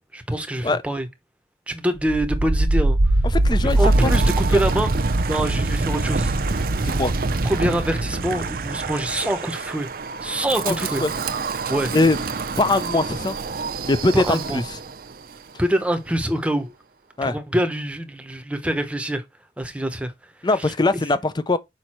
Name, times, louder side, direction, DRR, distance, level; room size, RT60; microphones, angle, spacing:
voice 1, 0.1-1.1 1.7-3.0 3.6-6.7 7.4-9.9 10.2-11.0 11.7-11.9 14.1-14.6 15.6-16.7 17.2-19.2 19.6-20.1 20.4-21.0, right 1 dB, 5° right, 0.9 m, -25 dB
Wind, 2.0-15.0, right 2 dB, 55° right, 0.7 m, -23 dB
voice 2, 3.4-4.1 6.8-7.1 10.6-10.7 11.0-11.1 11.9-12.2 12.6-13.4 13.8-14.6 17.2-17.4 20.4-21.6, left 2 dB, 25° left, 0.5 m, -21 dB
6.3 x 5.2 x 4.3 m
head